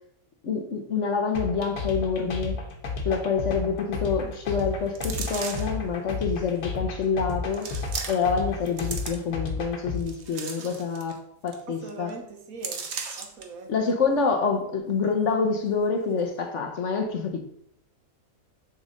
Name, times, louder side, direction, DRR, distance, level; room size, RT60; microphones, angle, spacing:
voice 1, 0.4-2.6 3.0-7.7 8.1-12.1 13.7-17.5, left 5 dB, 60° left, 4 dB, 1.2 m, -27 dB
sound 1, 1.3-10.0, left 4 dB, 85° left, 1.7 m, -32 dB
sound 2, 4.9-5.8 6.6-6.7 7.5-8.4 8.7-9.5 10.0-11.2 11.5-11.6 11.9-12.1 12.6-13.4 13.9-14.0, right 5 dB, 55° right, 1.1 m, -36 dB
voice 2, 11.8-12.9 13.2-13.7, right 3 dB, 70° right, 4 dB, 1.5 m, -40 dB
6.8 x 4.2 x 5.1 m, 0.69 s
omnidirectional pair, 1.6 m